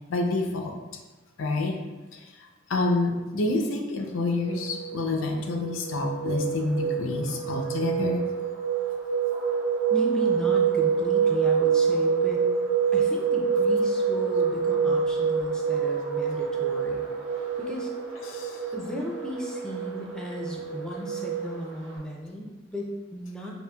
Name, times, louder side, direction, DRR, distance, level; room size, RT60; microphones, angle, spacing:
voice 1, 0.1-0.8 1.4-1.8 2.1-8.2 18.3-18.6, left 2 dB, 75° left, 3 dB, 0.5 m, -28 dB
sound 1, 4.2-22.0, right 6 dB, 85° right, 1.0 m, -27 dB
voice 2, 9.9-12.4 12.9-17.1 17.6-17.9 18.7-23.5, equal, 5° left, -2 dB, 0.3 m, -35 dB
5.0 x 2.5 x 2.2 m, 1.2 s
head